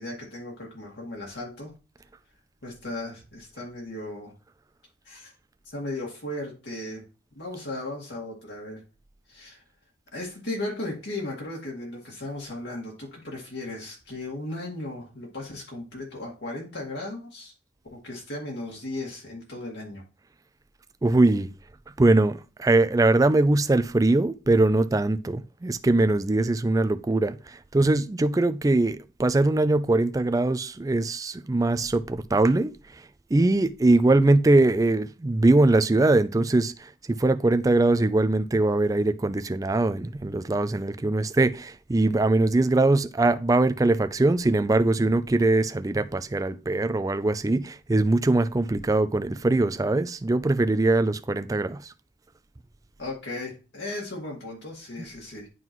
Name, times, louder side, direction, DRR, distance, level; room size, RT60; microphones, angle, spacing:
voice 1, 0.0-1.7 2.6-4.3 5.0-5.3 5.7-7.0 7.3-8.8 9.3-9.6 10.1-17.5 17.9-20.0 53.0-55.5, left 2 dB, 70° left, 2.0 m, -36 dB
voice 2, 21.0-21.5 22.0-32.7 33.3-51.9, right 2 dB, 20° right, 0.3 m, -22 dB
11.0 x 3.8 x 3.0 m
head